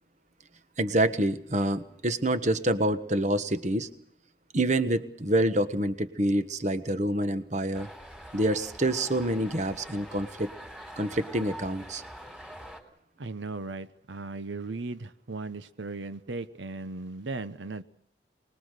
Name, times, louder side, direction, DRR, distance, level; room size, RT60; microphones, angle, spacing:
voice 1, 0.8-3.9 4.5-7.9 8.3-10.5 11.0-12.0, right 1 dB, 40° right, 11 dB, 1.4 m, -27 dB
sound 1, 7.7-12.8, equal, 5° right, 3.7 m, -45 dB
voice 2, 13.2-17.8, right 3 dB, 85° right, 12 dB, 0.9 m, -37 dB
24.5 x 20.5 x 6.7 m, 0.66 s
head